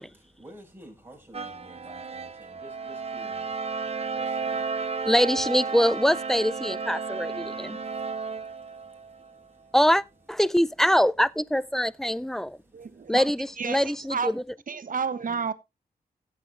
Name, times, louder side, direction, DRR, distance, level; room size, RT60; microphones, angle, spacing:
voice 1, 0.0-5.1 7.1-9.8 11.8-13.2 13.7-13.8, right 1 dB, 15° right, 5.6 m, -53 dB
sound 1, 1.3-9.4, right 5 dB, 40° right, 1.0 m, -33 dB
voice 2, 5.1-7.8 9.7-12.6 13.1-14.4, equal, ahead, 0.4 m, -24 dB
voice 3, 12.7-13.2 13.6-13.8 14.1-14.3 14.7-15.5, right 6 dB, 60° right, 1.2 m, -30 dB
16.0 x 7.9 x 2.5 m
wide cardioid pair, 90°, 16 cm